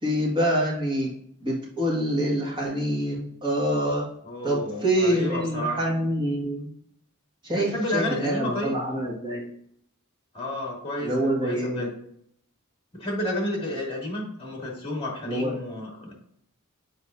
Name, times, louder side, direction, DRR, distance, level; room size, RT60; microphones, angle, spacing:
voice 1, 0.0-1.1 1.4-4.1 4.4-6.7 7.4-9.5 11.0-11.9 15.2-15.6, equal, 20° right, -4 dB, 1.8 m, -26 dB
voice 2, 4.2-5.9 7.5-8.8 10.3-11.9 12.9-16.1, left 1 dB, 25° left, -2 dB, 2.5 m, -31 dB
7.5 x 4.7 x 2.7 m, 0.67 s
head